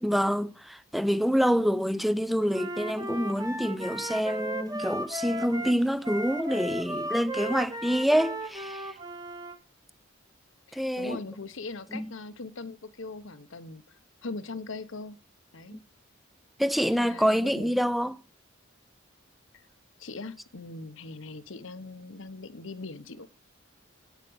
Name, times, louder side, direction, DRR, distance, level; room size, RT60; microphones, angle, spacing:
voice 1, 0.0-9.0 10.7-11.2 11.9-12.1 15.7-15.8 16.6-18.2, equal, ahead, 0.5 m, -27 dB
Wind instrument woodwind instrument, 2.5-9.5, right 1 dB, 20° right, 1.1 m, -35 dB
voice 2, 10.7-14.0 14.2-15.2 15.5-15.8 16.9-17.8 20.0-23.3, left 3 dB, 70° left, 1.0 m, -40 dB
9.1 x 8.3 x 7.8 m
head